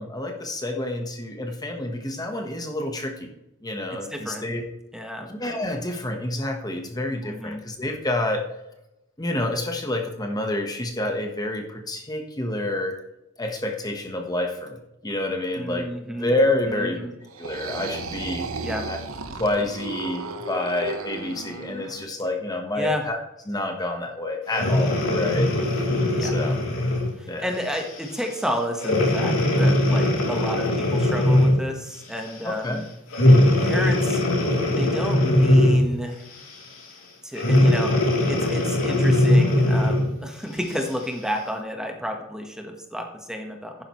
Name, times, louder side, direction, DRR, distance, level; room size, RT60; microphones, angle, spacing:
voice 1, 0.0-3.3 3.6-4.6 5.3-8.4 9.2-12.9 13.4-14.8 15.0-17.1 17.4-18.5 18.9-19.0 19.4-23.2 23.5-25.5 26.2-26.6 27.3-27.4 32.4-32.8, left 1 dB, 20° left, 3 dB, 1.2 m, -28 dB
voice 2, 3.9-4.5 4.9-5.3 7.2-7.6 15.6-16.3 16.7-17.1 18.6-18.9 22.7-23.0 25.1-25.5 26.1-26.3 27.2-32.8 33.6-34.2 34.7-36.3 37.2-37.9 38.3-43.8, equal, 5° right, 3 dB, 1.2 m, -31 dB
sound 1, 17.3-22.1, right 3 dB, 80° right, 1.0 m, -34 dB
Breathing, 24.5-27.1 27.7-28.0 28.8-31.7 33.1-36.0 37.4-40.1 40.7-40.8, left 1 dB, 70° left, 3.1 m, -20 dB
11.5 x 10.0 x 3.1 m, 0.91 s
head